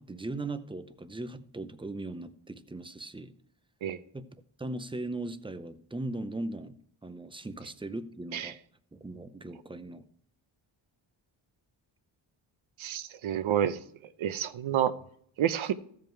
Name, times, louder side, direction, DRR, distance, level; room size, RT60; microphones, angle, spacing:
voice 1, 0.0-3.3 4.1-4.3 4.6-8.6 8.9-10.0, right 2 dB, 10° right, 0.6 m, -38 dB
voice 2, 12.8-13.8 14.2-14.9 15.4-15.7, right 10 dB, 80° right, 0.8 m, -29 dB
14.5 x 5.3 x 4.5 m
wide cardioid pair, 145°, 47 cm